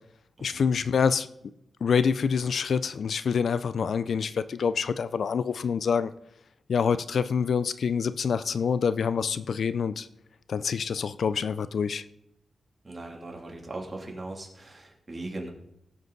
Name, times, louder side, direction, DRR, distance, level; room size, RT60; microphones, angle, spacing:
voice 1, 0.4-1.3 1.8-6.1 6.7-10.1 10.5-12.0, left 6 dB, 70° left, 14 dB, 0.5 m, -26 dB
voice 2, 12.8-15.5, right 2 dB, 30° right, 0 dB, 2.8 m, -39 dB
17.5 x 7.9 x 4.0 m, 0.80 s
wide cardioid pair, 100°, 0 cm